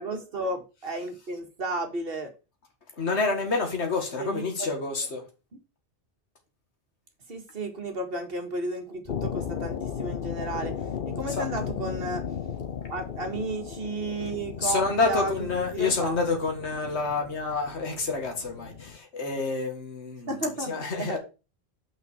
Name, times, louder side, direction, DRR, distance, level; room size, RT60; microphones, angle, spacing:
voice 1, 0.0-2.3 4.2-4.7 7.3-10.7 11.1-12.2 12.9-15.3 15.7-16.2 20.3-21.2, right 2 dB, 55° right, 1.9 m, -33 dB
voice 2, 3.0-5.2 11.2-11.5 14.6-20.3 20.7-21.2, left 4 dB, 75° left, 2.2 m, -28 dB
sound 1, 9.1-19.0, left 7 dB, 55° left, 0.8 m, -36 dB
5.9 x 5.7 x 6.8 m
omnidirectional pair, 1.1 m